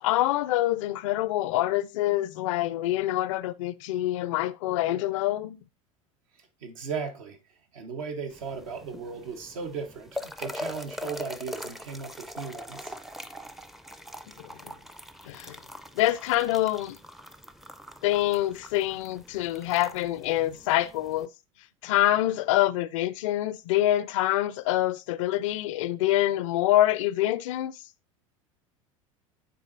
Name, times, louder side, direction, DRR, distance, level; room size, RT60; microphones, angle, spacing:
voice 1, 0.0-5.6 14.4-14.7 15.3-15.6 15.9-17.0 18.0-21.3 21.8-27.7, left 14 dB, 65° left, 0.4 m, -26 dB
voice 2, 6.6-7.4 7.7-12.9, right 5 dB, 70° right, 1.1 m, -36 dB
sound 1, 8.3-21.3, left 1 dB, ahead, 0.4 m, -42 dB
9.3 x 4.0 x 2.6 m
hypercardioid pair, 75°, 17 cm